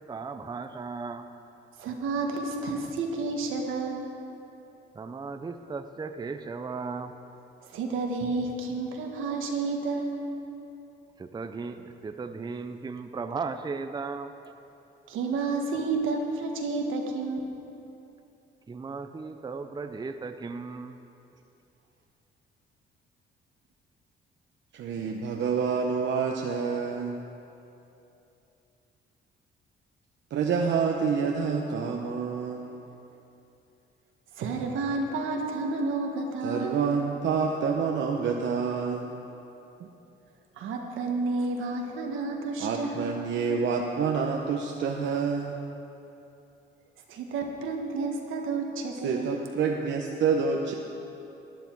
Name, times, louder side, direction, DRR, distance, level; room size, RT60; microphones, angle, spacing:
voice 1, 0.1-1.2 4.9-7.1 11.2-14.3 18.7-21.0, right 4 dB, 20° right, 8 dB, 0.5 m, -36 dB
voice 2, 1.8-4.1 7.6-10.3 15.1-17.4 34.3-36.8 40.6-43.2 47.1-49.4, right 3 dB, 85° right, 2 dB, 1.4 m, -30 dB
voice 3, 24.7-27.2 30.3-32.9 36.4-39.2 39.8-39.9 42.6-45.6 49.0-50.7, right 5 dB, 65° right, 1 dB, 0.8 m, -28 dB
12.5 x 10.5 x 4.6 m, 2.8 s
cardioid pair, 90°, 20 cm